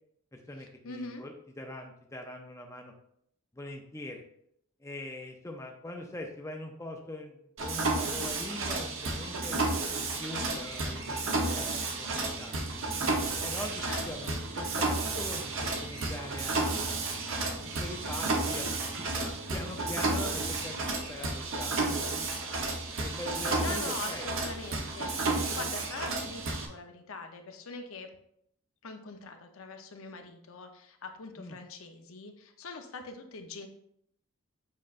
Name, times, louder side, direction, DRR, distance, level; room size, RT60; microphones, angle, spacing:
voice 1, 0.3-2.9 3.5-4.2 4.8-9.6 10.0-12.8 13.4-16.9 17.4-22.2 22.7-24.3 31.4-31.6, left 1 dB, 15° left, 2 dB, 0.5 m, -43 dB
voice 2, 0.8-1.2 13.9-14.3 23.6-28.1 28.8-33.7, left 4 dB, 70° left, 5 dB, 0.7 m, -43 dB
Mechanisms, 7.6-26.7, right 3 dB, 60° right, 0.9 m, -32 dB
7.4 x 5.3 x 2.5 m, 0.71 s
head